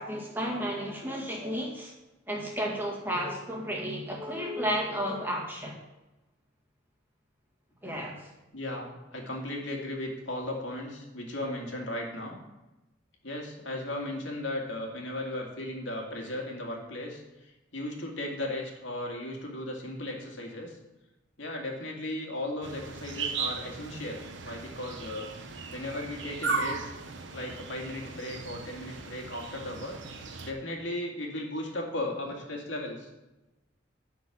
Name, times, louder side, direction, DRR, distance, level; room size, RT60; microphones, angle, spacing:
voice 1, 0.0-1.9 2.3-5.8 7.8-8.3, equal, 10° right, -2 dB, 2.0 m, -32 dB
voice 2, 8.5-12.4 13.2-20.8 21.4-25.3 25.7-26.9 27.3-30.0 30.4-33.1, left 1 dB, 80° left, 0 dB, 2.3 m, -36 dB
sound 1, 22.6-30.5, right 4 dB, 75° right, 1.0 m, -37 dB
11.5 x 4.7 x 7.2 m, 1.0 s
head